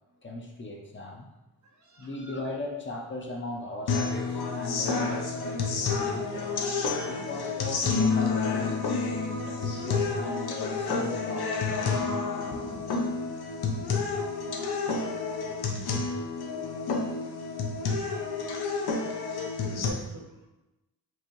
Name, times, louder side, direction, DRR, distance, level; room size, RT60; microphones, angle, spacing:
voice 1, 0.2-1.3 2.0-8.8 9.4-12.0 12.5-12.8, left 2 dB, 30° left, 1 dB, 0.5 m, -38 dB
voice 2, 1.6-2.1 19.6-20.5, right 1 dB, 50° right, 2 dB, 0.7 m, -44 dB
sound 1, 3.9-19.9, left 4 dB, 85° left, 0.7 m, -29 dB
4.6 x 2.7 x 3.0 m, 0.99 s
wide cardioid pair, 115°, 37 cm